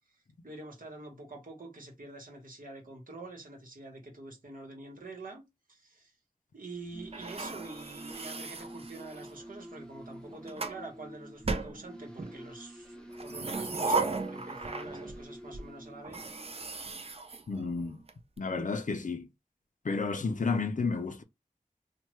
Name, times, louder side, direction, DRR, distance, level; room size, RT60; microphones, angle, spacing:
voice 1, 0.4-5.4 5.7-6.1 6.5-16.2, right 2 dB, 70° right, 1.1 m, -46 dB
sound 1, 6.7-17.2, equal, 5° left, 0.7 m, -48 dB
sound 2, 7.1-9.4 10.1-10.8 11.4-12.4 13.1-15.2 15.5-15.6 16.0-18.1, right 3 dB, 45° right, 0.5 m, -36 dB
voice 2, 17.5-18.0 18.4-19.3 19.8-21.2, left 4 dB, 60° left, 0.5 m, -31 dB
3.0 x 2.1 x 3.1 m
wide cardioid pair, 50°, 15 cm